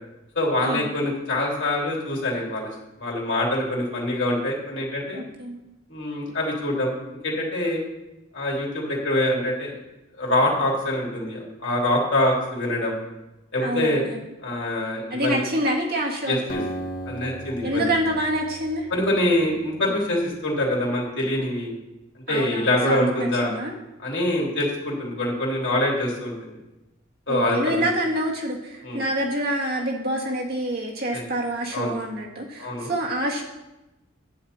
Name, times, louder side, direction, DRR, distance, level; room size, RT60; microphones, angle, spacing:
voice 1, 0.3-2.7 3.0-5.2 5.9-6.9 7.2-7.8 8.3-9.7 10.2-13.0 13.5-14.0 14.4-15.4 16.3-16.6 17.1-17.9 18.9-21.7 22.3-23.5 24.0-26.5 27.3-27.7 28.8-29.0 31.1-31.2 31.7-31.9 32.6-32.9, left 1 dB, 65° left, -3 dB, 3.2 m, -24 dB
voice 2, 5.1-5.6 13.6-14.2 15.1-16.4 17.6-18.9 22.3-23.7 27.3-33.4, right 1 dB, 50° right, -1 dB, 1.8 m, -27 dB
Acoustic guitar, 16.5-20.1, right 1 dB, 45° left, 1.3 m, -36 dB
10.5 x 9.1 x 4.3 m, 0.98 s
head